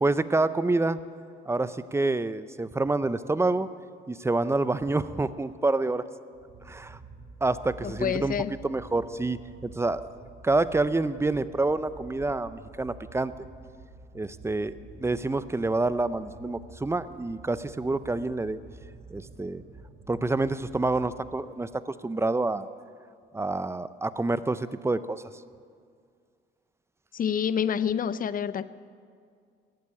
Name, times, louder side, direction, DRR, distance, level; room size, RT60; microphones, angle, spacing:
voice 1, 0.0-1.0 1.5-3.7 4.1-6.0 6.7-7.0 7.4-8.4 8.6-10.0 10.4-13.3 14.1-14.7 15.0-18.6 19.1-19.6 20.1-22.7 23.3-25.2, right 2 dB, 15° right, 15 dB, 0.5 m, -27 dB
sound 1, 6.3-21.7, right 3 dB, 55° right, 2.9 m, -48 dB
voice 2, 7.8-8.5 27.1-28.6, left 8 dB, 45° left, 16 dB, 0.5 m, -27 dB
14.5 x 8.5 x 9.7 m, 2.2 s
cardioid pair, 90°, 20 cm